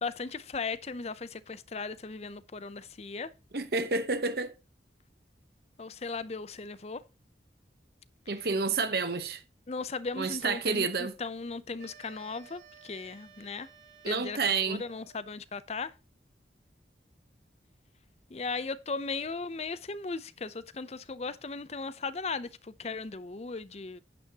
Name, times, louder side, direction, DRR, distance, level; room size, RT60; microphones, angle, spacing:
voice 1, 0.0-3.3 5.8-7.0 8.4-8.5 9.7-13.7 14.0-14.4 14.7-15.9 18.3-24.0, left 4 dB, 35° left, 0.6 m, -37 dB
voice 2, 3.5-4.5 8.3-9.4 10.2-11.1 14.0-14.8, right 4 dB, 60° right, 1.0 m, -29 dB
sound 1, 11.8-15.3, right 7 dB, 85° right, 5.2 m, -55 dB
10.5 x 9.3 x 2.9 m
head